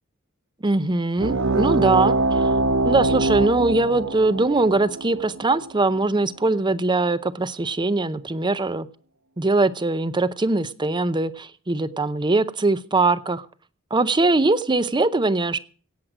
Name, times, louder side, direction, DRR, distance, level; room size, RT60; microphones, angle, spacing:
voice 1, 0.6-2.5 2.8-8.9 9.4-13.5 13.9-15.6, right 2 dB, 20° right, 15 dB, 0.6 m, -21 dB
sound 1, 1.2-6.3, right 2 dB, 75° right, 0.8 m, -23 dB
17.0 x 7.6 x 6.2 m, 0.42 s
head